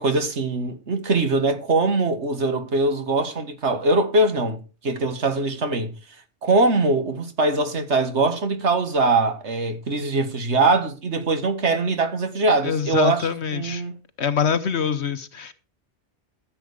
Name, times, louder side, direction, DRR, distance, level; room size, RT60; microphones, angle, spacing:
voice 1, 0.0-5.9 6.4-13.3 13.5-13.9, right 3 dB, 70° right, 1.9 m, -22 dB
voice 2, 12.6-13.8 14.2-15.5, left 7 dB, 65° left, 1.2 m, -24 dB
14.0 x 7.7 x 4.9 m
omnidirectional pair, 1.2 m